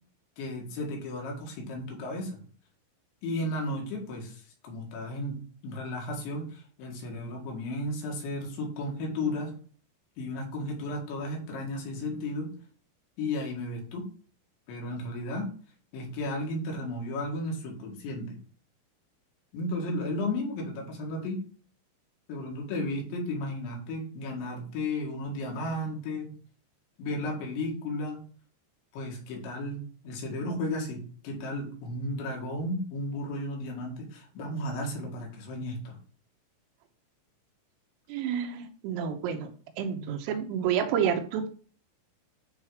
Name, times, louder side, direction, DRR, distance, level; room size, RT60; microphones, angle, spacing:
voice 1, 0.4-2.4 3.2-9.5 10.2-12.5 13.2-14.1 14.7-15.5 15.9-18.4 19.5-21.4 22.3-26.3 27.0-28.2 28.9-36.0 39.9-40.2, left 1 dB, 65° left, -1 dB, 3.9 m, -34 dB
voice 2, 38.1-39.5 39.8-41.5, right 8 dB, 80° right, 7 dB, 3.4 m, -29 dB
9.9 x 3.8 x 4.9 m, 0.42 s
omnidirectional pair, 5.9 m